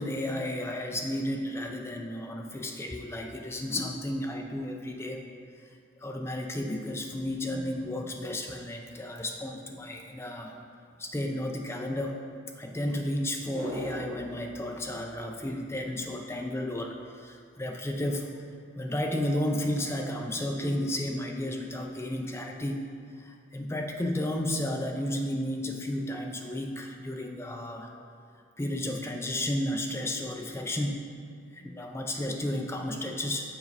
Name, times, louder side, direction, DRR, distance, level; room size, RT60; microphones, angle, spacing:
voice 1, 0.0-5.2 6.0-10.6 11.0-12.2 12.6-18.3 18.8-22.9 23.2-27.9 28.6-31.1 31.5-33.6, left 1 dB, 10° left, 2 dB, 0.4 m, -33 dB
sound 1, 13.5-16.0 16.3-16.4, equal, 25° right, 1.4 m, -40 dB
7.0 x 4.2 x 4.1 m, 2.3 s
head